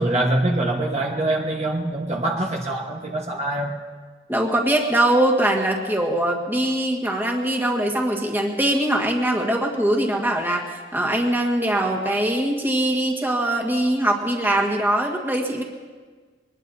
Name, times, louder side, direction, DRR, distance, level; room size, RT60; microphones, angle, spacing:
voice 1, 0.0-3.7, right 1 dB, 40° right, 0 dB, 1.3 m, -24 dB
voice 2, 4.3-15.6, right 1 dB, 10° right, 0 dB, 1.6 m, -22 dB
23.5 x 20.0 x 2.7 m, 1.5 s
head